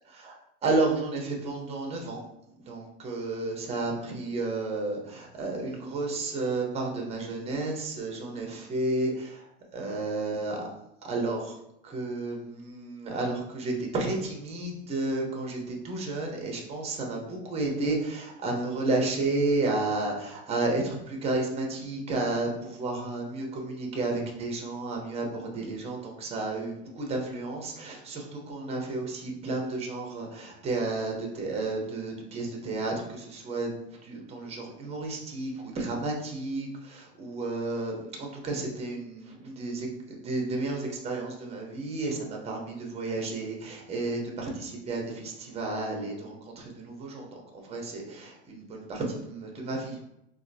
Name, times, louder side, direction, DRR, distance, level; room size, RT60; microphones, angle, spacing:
voice 1, 0.6-2.2 2.7-9.4 9.7-10.6 11.0-11.6 11.8-33.7 34.0-50.0, right 2 dB, 15° right, 0 dB, 0.6 m, -32 dB
4.2 x 2.5 x 2.6 m, 0.81 s
supercardioid pair, 140°, 37 cm